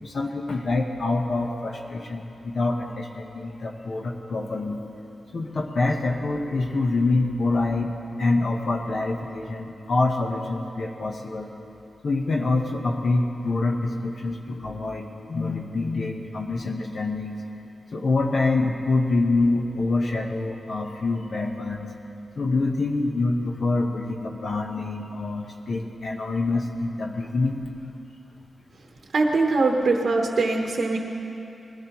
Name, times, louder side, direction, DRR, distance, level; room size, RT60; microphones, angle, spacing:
voice 1, 0.0-4.8 5.3-11.5 12.0-17.4 17.9-21.9 22.4-27.6, left 3 dB, 45° left, 2 dB, 1.0 m, -26 dB
voice 2, 29.1-31.0, right 3 dB, 50° right, 1 dB, 1.0 m, -22 dB
21.0 x 16.5 x 3.0 m, 2.8 s
wide cardioid pair, 165°, 0 cm